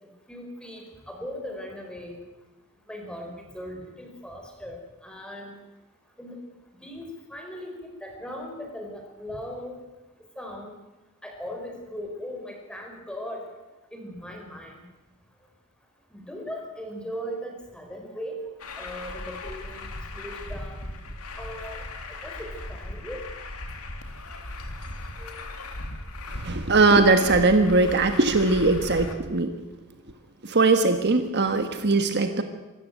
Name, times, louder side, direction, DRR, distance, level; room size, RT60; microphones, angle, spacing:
voice 1, 0.3-2.2 2.9-5.6 6.2-6.4 6.8-7.7 8.0-9.8 10.4-10.7 11.2-13.4 13.9-14.8 16.1-19.9 20.1-20.9 21.4-21.8 22.1-23.2 25.2-25.4, equal, 5° left, 2 dB, 4.3 m, -38 dB
Truck, 18.6-29.1, left 2 dB, 85° left, 2.6 m, -37 dB
voice 2, 26.4-29.5 30.4-32.4, right 3 dB, 50° right, 7 dB, 1.4 m, -20 dB
24.5 x 13.5 x 9.1 m, 1.1 s
head